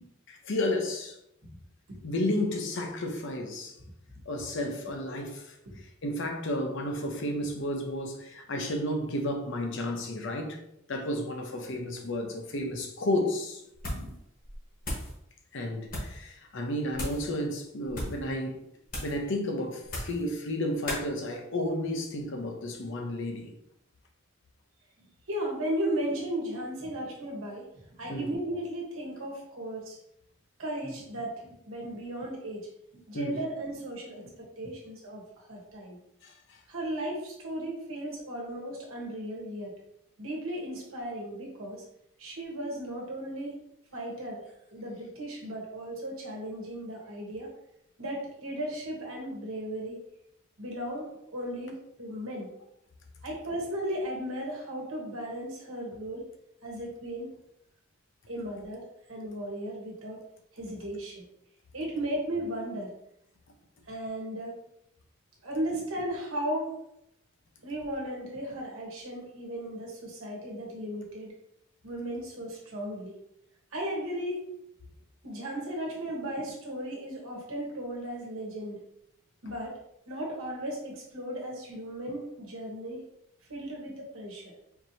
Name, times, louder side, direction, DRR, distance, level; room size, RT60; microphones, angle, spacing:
voice 1, 0.3-1.2 2.0-3.7 4.3-5.5 6.0-10.6 10.9-13.6 15.5-18.6 19.0-23.5 28.1-28.3 33.1-33.4 36.2-36.3, left 1 dB, 60° left, 0.7 m, -32 dB
sound 1, 13.8-14.2 14.4-15.1 15.8-16.2 16.9-17.3 17.9-18.2 18.9-19.2 19.8-20.2 20.9-21.1, left 1 dB, 40° left, 1.2 m, -36 dB
voice 2, 25.3-30.0 30.6-36.0 36.7-39.7 40.2-41.8 42.2-43.6 43.9-47.5 48.0-50.0 50.6-52.5 53.2-56.2 56.6-57.3 58.3-60.2 60.5-61.3 61.7-62.9 63.9-64.5 65.4-66.8 67.6-71.3 71.8-73.1 73.7-74.5 75.2-78.8 79.4-79.7 80.1-83.0 83.5-84.5, right 1 dB, 70° right, 1.2 m, -36 dB
4.6 x 2.9 x 2.7 m
head